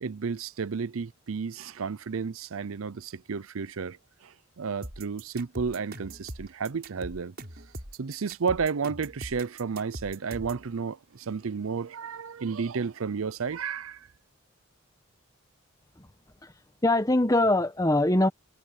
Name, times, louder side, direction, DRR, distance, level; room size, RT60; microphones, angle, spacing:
voice 1, 0.0-7.3 8.0-14.1, right 5 dB, 75° right, 0.6 m, -32 dB
sound 1, 4.8-10.7, right 1 dB, 50° right, 7.3 m, -41 dB
voice 2, 16.8-18.3, left 1 dB, 15° left, 1.2 m, -22 dB
head